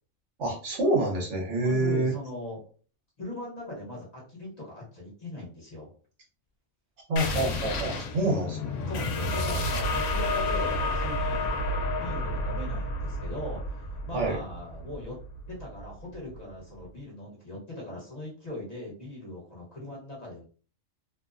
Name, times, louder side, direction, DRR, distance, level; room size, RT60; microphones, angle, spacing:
voice 1, 0.4-2.1 7.1-8.8 14.1-14.4, right 2 dB, 75° right, -1 dB, 1.2 m, -27 dB
voice 2, 1.6-2.6 3.2-5.9 8.9-11.5 12.0-15.2 15.5-20.5, left 1 dB, 35° left, -4 dB, 1.0 m, -39 dB
Hit To Explode Game, 7.2-16.4, left 1 dB, 80° left, 0.9 m, -30 dB
2.7 x 2.1 x 2.4 m, 0.41 s
omnidirectional pair, 1.3 m